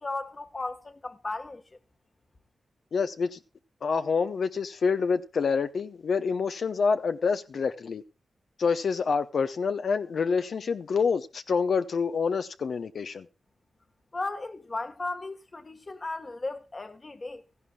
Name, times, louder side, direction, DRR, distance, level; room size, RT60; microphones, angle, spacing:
voice 1, 0.0-1.6 14.1-17.4, left 2 dB, 35° left, 1.3 m, -35 dB
voice 2, 2.9-3.4 3.8-8.0 8.6-13.3, left 5 dB, 65° left, 0.7 m, -27 dB
16.5 x 14.5 x 2.3 m
cardioid pair, 80°, 0 cm